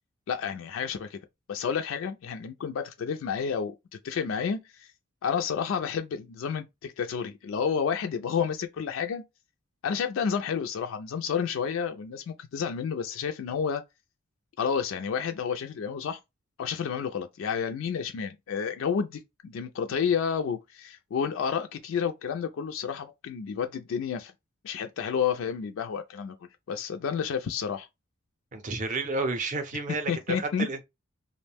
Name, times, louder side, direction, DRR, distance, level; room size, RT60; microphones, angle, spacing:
voice 1, 0.3-1.2 1.5-3.7 4.0-4.9 5.2-9.2 9.8-13.8 14.6-16.2 16.6-24.3 24.6-26.4 26.7-27.9 30.1-30.7, left 7 dB, 70° left, 0.3 m, -30 dB
voice 2, 28.5-30.8, right 3 dB, 40° right, 0.5 m, -31 dB
2.5 x 2.1 x 3.3 m
head